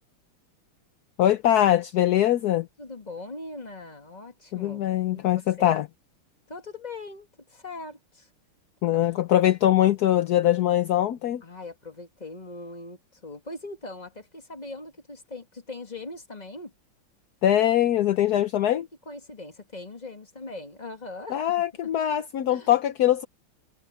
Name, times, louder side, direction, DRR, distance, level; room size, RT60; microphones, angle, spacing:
voice 1, 1.2-2.7 4.5-5.9 8.8-11.4 17.4-18.9 21.3-23.2, left 12 dB, 65° left, 1.0 m, -22 dB
voice 2, 2.8-5.8 6.5-8.3 8.8-9.0 11.4-16.7 18.4-18.5 19.1-21.9 22.5-22.7, left 2 dB, 20° left, 2.3 m, -41 dB
omnidirectional pair, 2.4 m